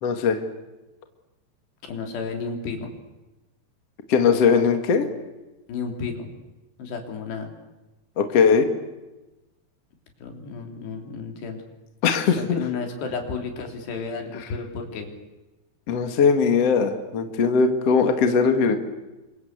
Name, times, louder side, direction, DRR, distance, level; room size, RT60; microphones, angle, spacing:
voice 1, 0.0-0.4 4.1-5.0 8.2-8.7 12.0-12.6 15.9-18.8, left 5 dB, 45° left, 6 dB, 2.6 m, -20 dB
voice 2, 1.9-2.9 5.7-6.3 6.8-7.5 10.2-11.6 12.4-15.1, left 5 dB, 80° left, 3 dB, 5.5 m, -32 dB
29.0 x 25.0 x 8.2 m, 1.1 s
omnidirectional pair, 4.8 m